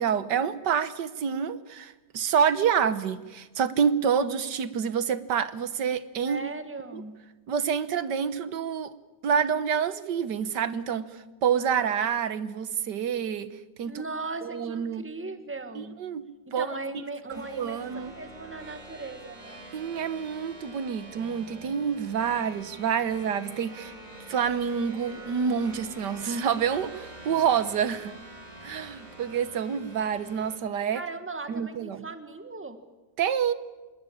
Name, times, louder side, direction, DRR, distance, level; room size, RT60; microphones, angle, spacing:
voice 1, 0.0-6.4 7.5-8.9 9.2-13.9 14.4-15.0 15.7-16.2 16.5-16.8 17.3-18.1 19.7-23.9 24.3-28.2 28.6-31.0 31.5-32.0 33.2-33.5, right 7 dB, 80° right, 13 dB, 1.7 m, -27 dB
voice 2, 6.3-7.2 13.9-16.0 16.5-19.6 30.9-32.8, right 3 dB, 5° right, 8 dB, 1.5 m, -38 dB
sound 1, 17.3-30.6, right 1 dB, 25° right, 3.2 m, -46 dB
27.0 x 20.5 x 8.6 m, 1.2 s
omnidirectional pair, 1.8 m